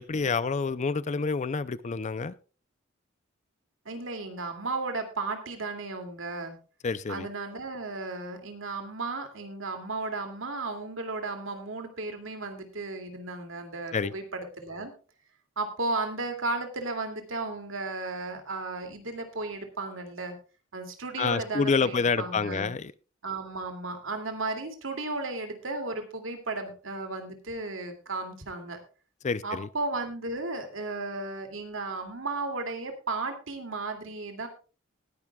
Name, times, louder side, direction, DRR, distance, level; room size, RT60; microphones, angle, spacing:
voice 1, 0.0-2.3 6.8-7.3 13.9-14.1 21.2-22.9 29.2-29.7, left 4 dB, 35° left, 17 dB, 0.4 m, -28 dB
voice 2, 3.9-6.6 7.1-14.9 15.6-20.3 20.7-22.7 23.2-28.8 29.4-34.5, right 3 dB, 75° right, 5 dB, 2.4 m, -34 dB
19.5 x 10.5 x 2.3 m, 0.34 s
head